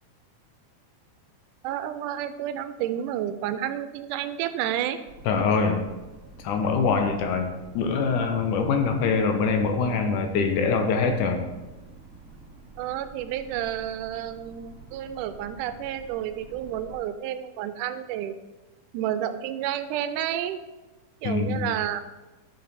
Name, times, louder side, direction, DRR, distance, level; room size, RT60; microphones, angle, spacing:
voice 1, 1.6-5.0 12.8-18.4 18.9-20.6 21.2-22.0, right 11 dB, 85° right, 11 dB, 2.1 m, -30 dB
sound 1, 5.0-17.0, right 3 dB, 45° right, 0.9 m, -48 dB
voice 2, 5.3-5.9 6.4-11.4 21.2-21.7, left 5 dB, 80° left, 5 dB, 2.3 m, -24 dB
8.6 x 6.7 x 4.1 m, 1.1 s
omnidirectional pair, 3.7 m